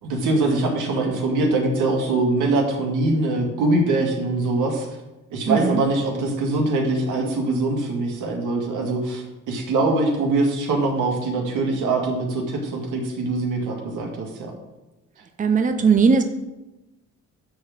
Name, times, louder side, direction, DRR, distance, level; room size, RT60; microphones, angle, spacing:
voice 1, 0.0-4.9 5.3-14.5, right 2 dB, 85° right, 0 dB, 2.2 m, -23 dB
voice 2, 5.5-5.8 15.4-16.2, right 5 dB, 25° right, 6 dB, 0.7 m, -18 dB
11.0 x 3.9 x 7.3 m, 1.0 s
cardioid pair, 90°, 30 cm